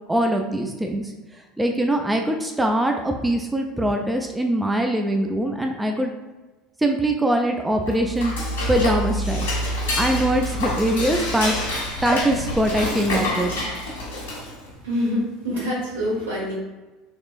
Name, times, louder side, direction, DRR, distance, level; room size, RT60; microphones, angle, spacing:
voice 1, 0.1-1.1 1.6-6.1 6.8-8.3 8.7-9.5 10.0-11.5 12.0-13.5, right 1 dB, 10° right, 3 dB, 0.4 m, -22 dB
Dishes pots and pans / Cutlery silverware, 7.8-14.7, left 1 dB, 80° left, 1.2 m, -27 dB
voice 2, 14.8-16.5, left 1 dB, 85° right, -6 dB, 1.4 m, -25 dB
3.5 x 3.2 x 2.4 m, 1.2 s
hypercardioid pair, 70°, 0 cm